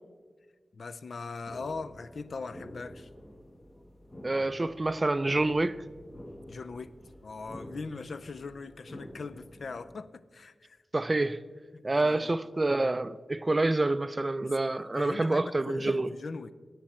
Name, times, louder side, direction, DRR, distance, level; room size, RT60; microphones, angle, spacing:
voice 1, 0.7-3.1 6.5-10.8 11.7-12.3 14.4-14.5 15.0-16.5, left 4 dB, 65° left, 0.4 m, -40 dB
sound 1, 1.5-9.9, left 1 dB, 20° left, 0.9 m, -48 dB
voice 2, 4.2-5.8 10.9-11.4 11.8-16.1, right 2 dB, 25° right, 0.3 m, -27 dB
17.5 x 7.2 x 4.3 m
wide cardioid pair, 130°, 0 cm